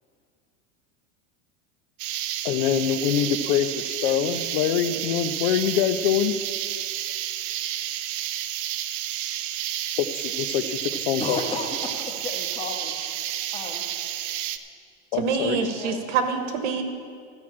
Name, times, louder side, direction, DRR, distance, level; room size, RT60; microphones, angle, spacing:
sound 1, 2.0-14.6, right 12 dB, 85° right, 0.7 m, -31 dB
voice 1, 2.4-6.4 10.0-11.4 15.1-15.6, left 9 dB, 55° left, 11 dB, 0.7 m, -24 dB
voice 2, 11.2-12.9 13.5-13.8 15.4-16.0, left 3 dB, 15° left, 1 dB, 1.2 m, -33 dB
voice 3, 15.1-16.8, right 6 dB, 70° right, 6 dB, 1.5 m, -26 dB
13.0 x 6.2 x 8.4 m, 2.3 s
supercardioid pair, 165°, 37 cm